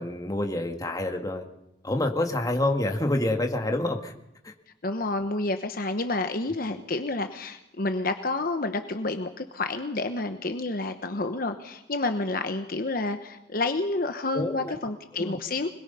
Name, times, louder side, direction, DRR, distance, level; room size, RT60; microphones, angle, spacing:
voice 1, 0.0-1.5 1.8-4.1 4.4-4.5 14.3-14.9 15.2-15.4, left 1 dB, 20° left, 3 dB, 2.0 m, -27 dB
voice 2, 4.8-15.7, left 2 dB, 55° left, 7 dB, 1.0 m, -29 dB
25.5 x 20.5 x 5.6 m, 0.87 s
head